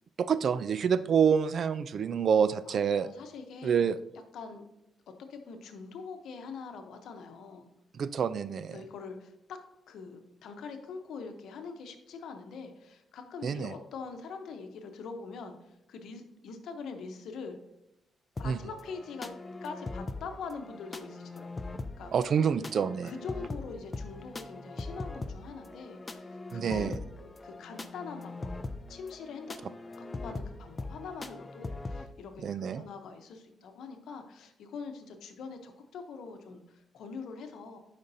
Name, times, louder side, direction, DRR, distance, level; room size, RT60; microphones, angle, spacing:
voice 1, 0.2-3.1 3.6-4.0 8.0-8.8 13.4-13.7 18.4-18.6 22.1-23.1 26.5-27.0 32.4-32.8, right 7 dB, 50° right, 14 dB, 0.3 m, -27 dB
voice 2, 2.6-3.9 4.3-4.7 5.3-7.7 8.7-9.6 9.9-15.5 15.9-17.6 18.4-19.3 19.6-22.1 23.0-28.6 28.9-29.5 29.9-37.8, left 5 dB, 75° left, 6 dB, 0.9 m, -43 dB
sound 1, 18.4-32.1, left 2 dB, 20° left, 0.4 m, -41 dB
10.5 x 5.2 x 2.7 m, 0.86 s
cardioid pair, 130°, 0 cm